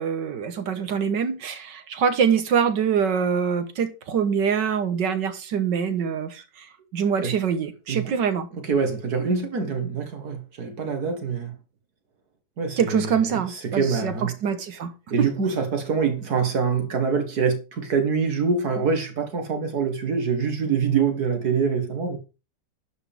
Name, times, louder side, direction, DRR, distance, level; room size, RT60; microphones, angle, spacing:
voice 1, 0.0-6.4 6.9-8.5 12.8-14.9 15.2-15.3, right 7 dB, 80° right, 1.8 m, -24 dB
voice 2, 8.5-11.6 12.6-14.3 15.1-22.2, right 5 dB, 60° right, 2.0 m, -25 dB
11.5 x 8.0 x 3.6 m
omnidirectional pair, 1.9 m